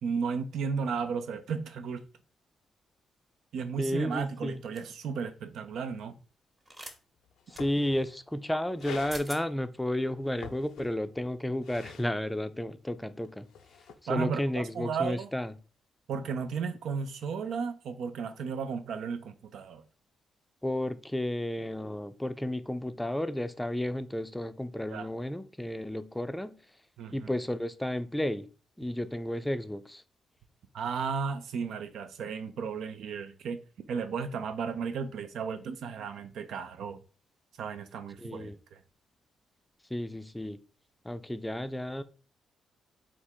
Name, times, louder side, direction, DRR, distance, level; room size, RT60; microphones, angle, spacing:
voice 1, 0.0-2.0 3.5-6.2 14.1-15.3 16.1-19.8 24.9-25.1 27.0-27.3 30.7-33.6 33.9-37.0 37.6-38.8, right 6 dB, 75° right, 0.5 m, -34 dB
voice 2, 3.8-4.6 7.5-13.5 14.1-15.5 20.6-26.6 27.1-28.5 28.8-30.0 38.2-38.6 39.9-40.6 41.0-42.0, left 1 dB, 10° left, 0.4 m, -32 dB
sound 1, 4.8-5.0 6.7-7.0 7.5-7.7 8.8-8.9 9.1-9.4, right 1 dB, 25° right, 1.0 m, -43 dB
sound 2, 6.9-7.0 7.3-8.2 8.8-9.2 10.2-11.1 11.5-12.1 13.2-13.9, left 7 dB, 80° left, 0.5 m, -46 dB
3.5 x 2.5 x 4.4 m
supercardioid pair, 55°, 0 cm